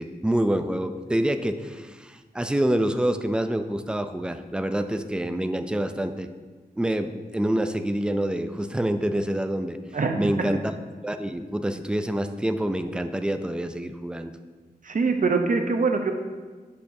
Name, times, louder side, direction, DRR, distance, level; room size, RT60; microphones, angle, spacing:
voice 1, 0.0-6.3 6.8-9.8 10.2-10.7 11.0-14.3, right 1 dB, 5° right, 8 dB, 0.4 m, -26 dB
voice 2, 9.9-10.5 14.8-16.1, right 4 dB, 55° right, 5 dB, 0.7 m, -24 dB
8.1 x 6.6 x 2.7 m, 1.4 s
wide cardioid pair, 90°, 17 cm